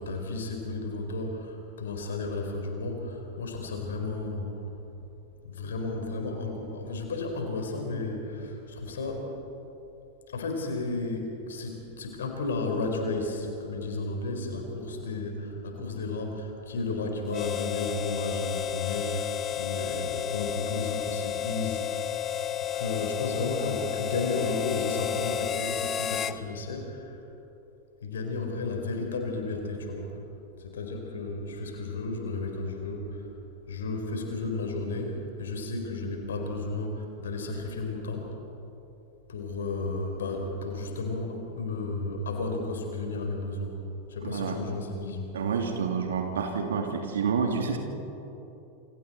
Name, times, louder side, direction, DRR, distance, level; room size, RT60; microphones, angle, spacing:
voice 1, 0.0-4.5 5.4-9.3 10.3-22.2 22.7-27.2 28.0-30.2 30.6-33.3 33.7-38.4 39.3-43.8 44.1-45.3, left 3 dB, 65° left, 3 dB, 4.5 m, -33 dB
Harmonica, 17.3-26.4, left 10 dB, 25° left, 0.8 m, -31 dB
voice 2, 44.2-44.6 45.3-47.8, right 6 dB, 65° right, 3 dB, 3.1 m, -28 dB
28.5 x 26.5 x 4.5 m, 3.0 s
figure-of-eight pair, 90°, 0 cm